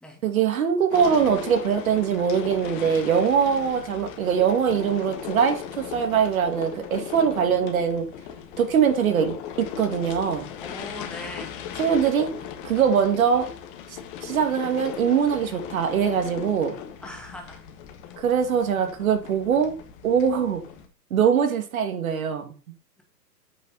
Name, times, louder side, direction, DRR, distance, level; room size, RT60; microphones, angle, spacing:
voice 1, 0.2-8.0 8.6-9.3 9.8-10.5 11.8-12.3 12.6-13.5 14.2-16.7 18.2-19.7 20.0-20.6 21.1-22.5, right 7 dB, 55° right, 6 dB, 2.5 m, -22 dB
sound 1, 0.9-20.9, left 9 dB, 30° left, 1.5 m, -38 dB
voice 2, 10.6-11.6 17.0-17.6 18.1-18.2, left 1 dB, ahead, 2 dB, 2.1 m, -40 dB
8.9 x 5.6 x 6.8 m, 0.39 s
figure-of-eight pair, 125°, 50 cm